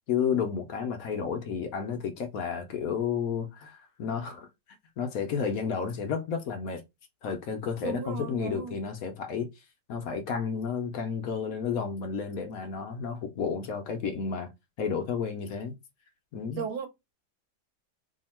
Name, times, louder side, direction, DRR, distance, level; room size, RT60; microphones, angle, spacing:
voice 1, 0.1-4.5 5.0-6.8 7.2-9.5 9.9-14.5 14.8-15.8 16.3-16.6, left 6 dB, 65° left, 1.0 m, -31 dB
voice 2, 7.8-8.8 16.6-16.9, right 6 dB, 80° right, 1.4 m, -35 dB
2.8 x 2.7 x 4.1 m
omnidirectional pair, 1.8 m